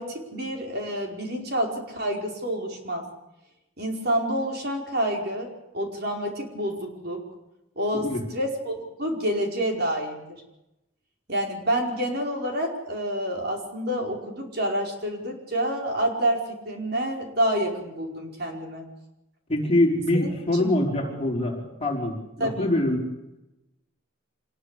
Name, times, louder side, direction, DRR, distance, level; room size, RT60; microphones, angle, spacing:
voice 1, 0.0-3.1 3.8-5.5 5.7-7.2 7.8-10.4 11.3-18.9 20.5-20.7 21.0-21.1 22.4-22.7, equal, 50° right, 2 dB, 5.0 m, -28 dB
voice 2, 19.5-23.1, left 1 dB, 30° left, -1 dB, 4.5 m, -24 dB
26.0 x 20.5 x 8.3 m, 0.91 s
head